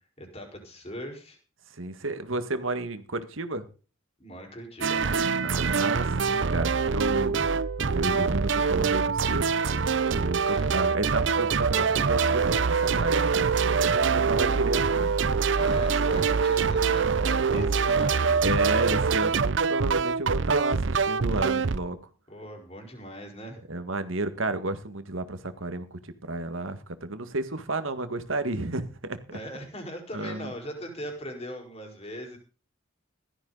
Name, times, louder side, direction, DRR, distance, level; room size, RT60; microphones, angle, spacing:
voice 1, 0.2-1.4 4.2-5.2 10.5-10.8 15.6-19.0 22.3-23.6 29.3-32.4, equal, 30° left, 4.7 m, -40 dB
voice 2, 1.7-3.6 5.4-7.3 7.8-9.5 10.1-15.1 16.1-16.2 17.5-17.7 18.4-22.0 23.7-29.4 30.1-30.5, right 2 dB, 85° right, 1.8 m, -32 dB
sound 1, 4.8-21.8, right 5 dB, 65° right, 0.6 m, -24 dB
16.0 x 13.0 x 4.1 m
head